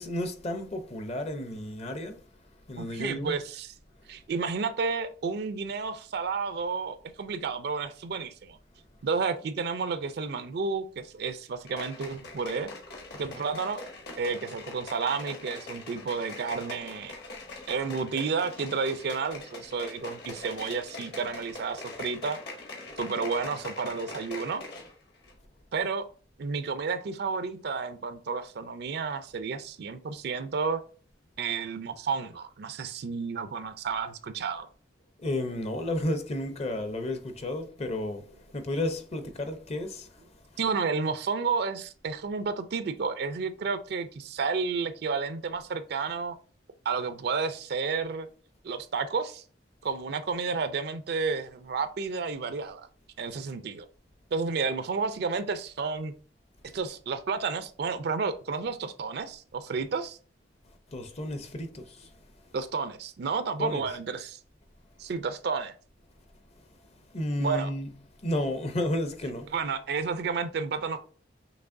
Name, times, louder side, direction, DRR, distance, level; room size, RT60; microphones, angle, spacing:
voice 1, 0.0-2.2 2.7-3.4 35.2-38.3 38.5-40.1 60.9-62.1 63.6-63.8 67.1-67.9 68.2-69.5, left 1 dB, 35° left, 0.6 m, -32 dB
voice 2, 2.8-3.7 4.1-8.6 9.0-12.7 13.2-13.8 14.2-17.1 17.7-22.4 23.0-24.6 25.7-26.0 26.4-30.8 31.4-34.7 40.6-46.4 46.9-48.3 48.6-49.4 49.8-52.9 53.2-53.9 54.3-56.1 56.7-60.2 62.5-64.4 65.0-65.7 67.4-67.7 69.5-71.0, right 5 dB, 60° right, 0.4 m, -31 dB
sound 1, 11.7-24.9 25.2-25.3, left 2 dB, 60° left, 1.4 m, -43 dB
6.0 x 3.0 x 2.6 m
head